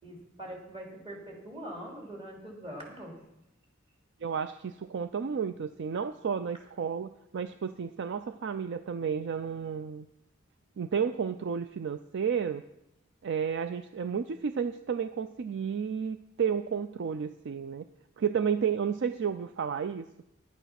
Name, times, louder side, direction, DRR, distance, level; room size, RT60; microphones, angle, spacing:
voice 1, 0.0-3.2, right 1 dB, 30° right, -1 dB, 3.1 m, -43 dB
voice 2, 4.2-10.1 10.8-12.6 13.2-17.8 18.2-20.1, right 7 dB, 60° right, 11 dB, 0.4 m, -32 dB
11.0 x 9.3 x 5.9 m, 0.85 s
head